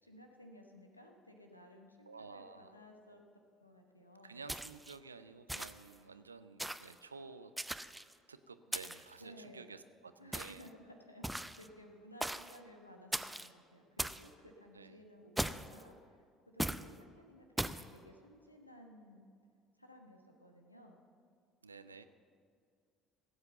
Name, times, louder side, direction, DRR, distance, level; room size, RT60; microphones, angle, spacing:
voice 1, 0.0-3.2 3.6-4.4 9.2-9.7 10.2-19.3 19.8-21.0 21.8-22.0, equal, 90° left, 3 dB, 1.1 m, -57 dB
voice 2, 2.1-2.8 4.2-7.5 8.3-10.7 14.7-14.9 21.6-22.0, right 4 dB, 85° right, 12 dB, 0.5 m, -52 dB
sound 1, 4.5-5.0 5.5-5.9 6.6-6.9 7.6-8.1 8.7-9.1 10.3-10.7 11.2-11.7 12.2-12.6 13.1-13.5 14.0-14.3 15.4-15.8 16.6-16.9 17.6-17.9, right 1 dB, 5° right, 0.5 m, -38 dB
16.0 x 8.0 x 6.8 m, 2.2 s
figure-of-eight pair, 60°, 0 cm